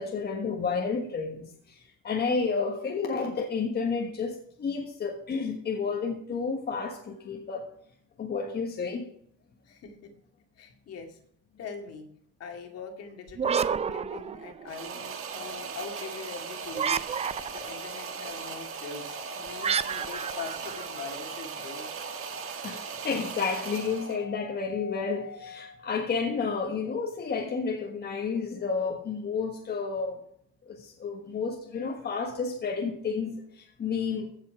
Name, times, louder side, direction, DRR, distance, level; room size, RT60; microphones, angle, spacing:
voice 1, 0.0-1.8 2.0-7.6 8.2-9.1 22.6-30.2 30.7-34.3, left 5 dB, 35° left, 1.4 m, -31 dB
voice 2, 9.7-10.1 10.6-11.2 11.6-12.1 12.4-17.1 17.5-21.9, left 5 dB, 55° left, 2.1 m, -42 dB
sound 1, 13.3-14.9 16.7-17.8 19.6-21.5, right 7 dB, 20° right, 0.4 m, -30 dB
sound 2, 14.7-24.2, right 7 dB, 45° right, 1.6 m, -38 dB
Organ, 15.3-26.2, left 5 dB, 75° left, 1.4 m, -47 dB
15.0 x 5.7 x 4.9 m
cardioid pair, 140°, 30 cm